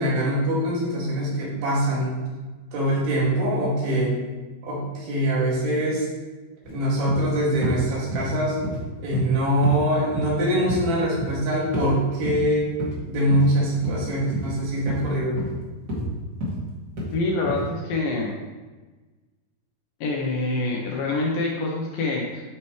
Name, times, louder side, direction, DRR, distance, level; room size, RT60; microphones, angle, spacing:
voice 1, 0.0-2.2 2.7-4.2 4.6-6.1 6.7-8.6 9.0-12.7 13.1-15.4, equal, 75° right, -5 dB, 4.2 m, -23 dB
sound 1, 6.6-6.7 7.1-7.3 7.6-7.8 8.1-8.3 8.6-8.8 9.1-9.3 9.6-9.8 10.1-10.4 10.7-10.8 11.2-11.4 11.7-11.9 12.3-12.4 12.8-12.9 13.3-13.5 13.8-14.0 14.3-14.5 14.9-15.1 15.4-15.5 15.9-16.1 16.4-16.6 17.0-17.1 17.5-17.6, left 1 dB, 30° right, 1.9 m, -29 dB
voice 2, 17.1-18.3 20.0-22.4, left 2 dB, 70° left, -2 dB, 2.2 m, -26 dB
10.5 x 5.9 x 3.2 m, 1.3 s
omnidirectional pair, 4.8 m